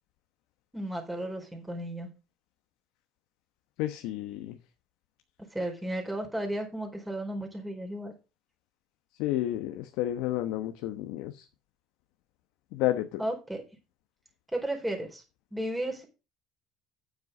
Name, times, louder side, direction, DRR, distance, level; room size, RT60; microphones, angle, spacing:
voice 1, 0.7-2.1 5.5-8.1 13.2-13.6 14.5-15.2 15.5-16.1, right 1 dB, 5° right, 4.2 m, -34 dB
voice 2, 3.8-4.6 9.2-11.5 12.7-13.2, left 14 dB, 80° left, 1.0 m, -31 dB
9.3 x 7.5 x 5.4 m
supercardioid pair, 105°, 0 cm